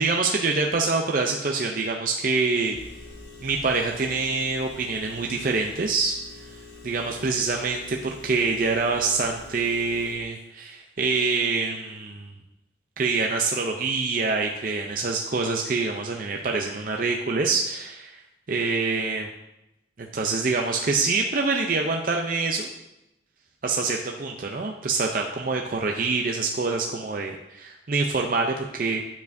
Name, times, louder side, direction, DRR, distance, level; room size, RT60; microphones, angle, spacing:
voice 1, 0.0-2.8 3.4-6.2 6.8-12.3 13.0-18.1 18.5-19.3 20.0-22.7 23.6-29.0, right 4 dB, 45° right, 1 dB, 0.5 m, -25 dB
Engine, 2.7-10.1, left 3 dB, 60° left, 1.8 m, -45 dB
9.4 x 7.1 x 2.6 m, 0.89 s
head